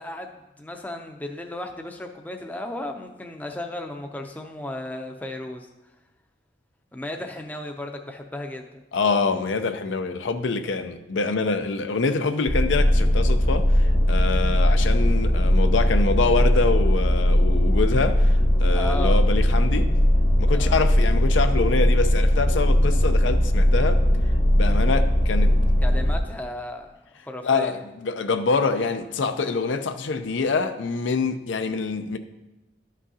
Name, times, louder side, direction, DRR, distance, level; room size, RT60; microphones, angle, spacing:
voice 1, 0.0-5.7 6.9-8.8 18.7-19.2 20.5-20.9 25.8-27.8, left 1 dB, 10° left, 0.5 m, -35 dB
voice 2, 8.9-19.9 20.4-24.0 24.6-25.5 27.4-32.2, left 4 dB, 85° left, 0.5 m, -25 dB
sound 1, 12.5-26.2, equal, 45° left, 1.0 m, -19 dB
12.0 x 6.1 x 2.8 m
head